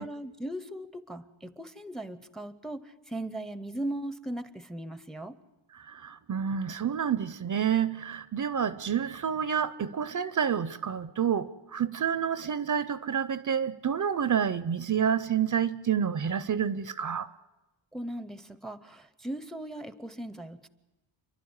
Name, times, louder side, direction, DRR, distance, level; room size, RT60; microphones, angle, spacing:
voice 1, 0.0-5.4 17.9-20.7, right 1 dB, ahead, 0.7 m, -38 dB
voice 2, 5.7-17.3, right 8 dB, 45° right, 0.6 m, -29 dB
28.5 x 11.5 x 9.6 m
wide cardioid pair, 135°, 43 cm